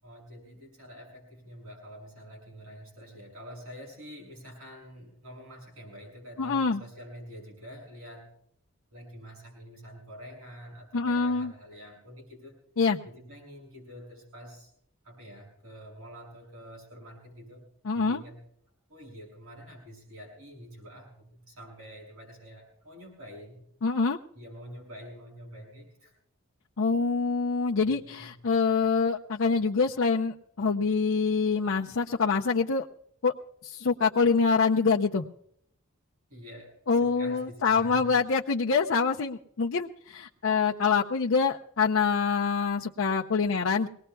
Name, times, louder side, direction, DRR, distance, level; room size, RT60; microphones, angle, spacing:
voice 1, 0.0-8.3 8.9-12.6 13.0-14.7 15.0-17.6 17.9-18.4 18.9-23.6 24.3-26.1 27.9-28.4 36.3-38.1, equal, 80° right, 0 dB, 6.3 m, -47 dB
voice 2, 6.4-6.8 10.9-11.5 12.8-13.0 17.8-18.2 23.8-24.2 26.8-32.9 33.2-33.3 33.6-35.2 36.9-43.9, left 5 dB, 70° left, -1 dB, 0.6 m, -25 dB
23.0 x 19.0 x 2.3 m, 0.69 s
head